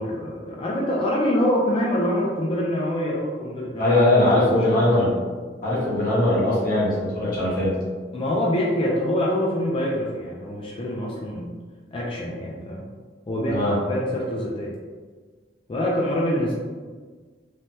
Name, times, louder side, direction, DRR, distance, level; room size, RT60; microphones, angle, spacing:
voice 1, 0.0-4.0 4.3-4.8 8.1-11.6 11.9-12.8 13.3-14.7 15.7-16.5, left 1 dB, 30° left, -3 dB, 0.3 m, -25 dB
voice 2, 3.8-5.2 5.6-7.8 13.5-13.8, left 1 dB, 50° left, -8 dB, 1.2 m, -20 dB
3.2 x 2.2 x 2.7 m, 1.5 s
head